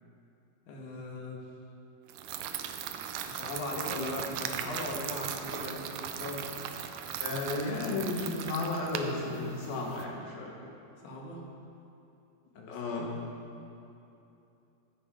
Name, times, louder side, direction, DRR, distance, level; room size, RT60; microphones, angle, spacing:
voice 1, 0.7-1.5 3.3-6.5 11.0-11.5 12.6-12.8, left 2 dB, 65° left, -1 dB, 2.6 m, -39 dB
sound 1, 2.1-10.0, right 9 dB, 80° right, 1.9 m, -38 dB
voice 2, 7.2-10.5 12.7-13.1, left 2 dB, 85° left, -1 dB, 3.4 m, -33 dB
13.5 x 8.9 x 4.9 m, 2.7 s
omnidirectional pair, 4.1 m